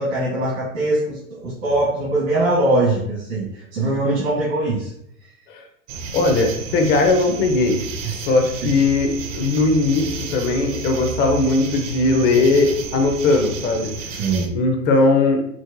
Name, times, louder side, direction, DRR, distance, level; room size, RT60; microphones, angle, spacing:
voice 1, 0.0-4.9 8.6-8.7 14.1-14.5, right 2 dB, 70° right, -7 dB, 1.4 m, -22 dB
sound 1, 5.9-14.5, right 4 dB, 35° right, 0.5 m, -32 dB
voice 2, 6.1-7.8 8.1-9.1 9.3-13.9 14.1-14.2 14.5-15.4, left 3 dB, 25° left, 4 dB, 0.5 m, -18 dB
4.6 x 2.1 x 2.5 m, 0.73 s
hypercardioid pair, 110°, 41 cm